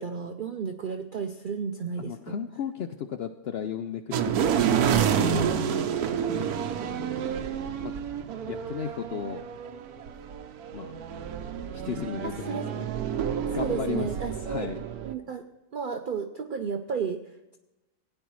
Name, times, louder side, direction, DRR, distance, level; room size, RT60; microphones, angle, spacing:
voice 1, 0.0-2.4 12.2-12.7 13.6-14.7 15.0-15.5 15.7-17.6, right 6 dB, 70° right, 7 dB, 0.5 m, -33 dB
voice 2, 2.0-5.6 6.7-7.5 7.8-7.9 8.5-9.4 10.7-10.9 11.7-12.9 13.5-14.1 14.5-14.8, left 8 dB, 70° left, 7 dB, 0.6 m, -35 dB
sound 1, 4.1-15.1, right 8 dB, 90° right, 1.2 m, -29 dB
16.5 x 9.7 x 3.1 m, 1.0 s
omnidirectional pair, 1.5 m